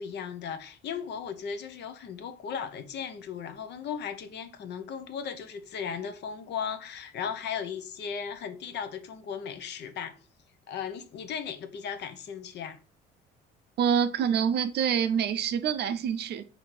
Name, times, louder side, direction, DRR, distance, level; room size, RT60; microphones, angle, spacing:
voice 1, 0.0-10.2 10.7-12.8, left 7 dB, 55° left, 0.7 m, -36 dB
voice 2, 13.8-16.5, right 8 dB, 55° right, 0.5 m, -26 dB
4.3 x 2.7 x 4.4 m
cardioid pair, 110°, 21 cm